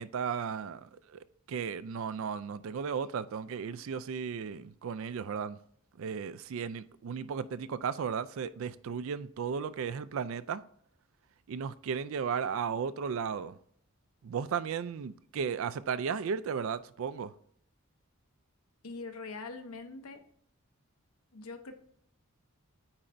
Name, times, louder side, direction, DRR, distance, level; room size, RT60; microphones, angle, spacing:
voice 1, 0.0-5.6 6.0-10.6 11.5-13.6 14.2-17.3, right 6 dB, 65° right, 0.3 m, -35 dB
voice 2, 18.8-20.2 21.3-21.7, left 3 dB, 85° left, 0.8 m, -43 dB
8.8 x 4.4 x 2.6 m
head